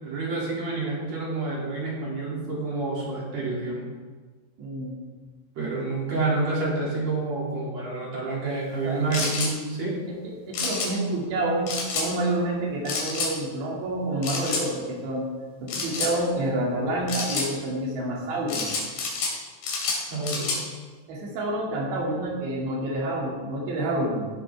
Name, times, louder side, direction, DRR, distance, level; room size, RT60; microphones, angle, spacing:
voice 1, 0.0-3.9 5.6-10.0 20.0-20.6, right 3 dB, 40° right, -5 dB, 3.6 m, -28 dB
voice 2, 4.6-5.0 8.8-9.3 10.1-15.3 15.6-18.7 20.3-20.5 21.1-24.3, right 1 dB, 85° right, -3 dB, 4.8 m, -28 dB
sound 1, 9.1-9.5 10.5-10.9 11.7-12.1 12.9-13.3 14.2-14.6 15.7-16.1 17.1-17.5 18.5-19.3 19.6-20.6, left 4 dB, 85° left, 5.1 m, -28 dB
16.5 x 11.0 x 3.5 m, 1.4 s
omnidirectional pair, 4.9 m